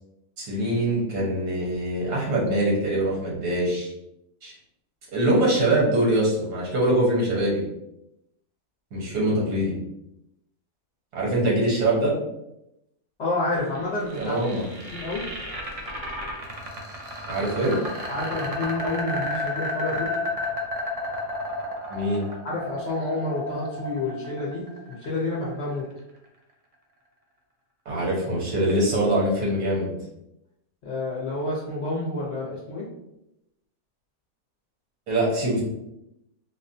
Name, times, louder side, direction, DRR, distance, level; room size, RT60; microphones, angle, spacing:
voice 1, 0.4-3.9 4.4-4.5 5.1-7.6 8.9-9.8 11.1-12.1 14.2-14.7 17.3-17.8 21.9-22.2 27.8-29.9 35.1-35.6, right 1 dB, 85° right, -5 dB, 1.8 m, -23 dB
voice 2, 13.2-14.4 14.9-15.2 18.1-20.1 22.4-25.8 30.8-32.9, left 2 dB, 55° left, -5 dB, 0.9 m, -29 dB
sound 1, 13.7-25.8, left 1 dB, 70° right, 0.3 m, -32 dB
4.2 x 2.2 x 2.6 m, 0.86 s
omnidirectional pair, 1.6 m